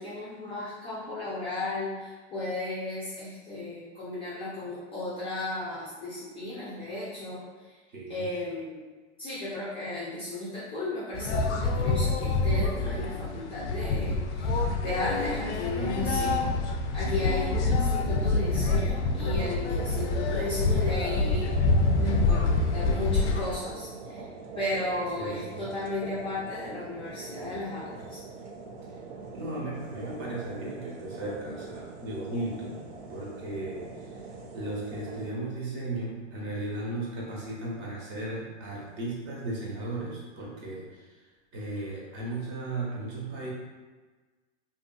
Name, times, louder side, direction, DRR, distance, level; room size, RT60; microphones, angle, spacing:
voice 1, 0.0-7.8 8.1-8.8 9.2-16.4 16.9-21.5 21.9-24.2 24.6-28.2, left 2 dB, 15° left, -10 dB, 0.4 m, -34 dB
voice 2, 7.9-8.2 15.8-16.2 25.2-25.6 29.3-32.8 33.1-34.1 34.5-41.2 41.5-43.5, right 2 dB, 40° right, -5 dB, 0.9 m, -36 dB
sound 1, 11.1-23.6, left 3 dB, 70° left, 0.5 m, -26 dB
sound 2, 17.1-35.3, right 4 dB, 60° right, 0.5 m, -43 dB
2.7 x 2.6 x 2.2 m, 1.3 s
hypercardioid pair, 125°, 37 cm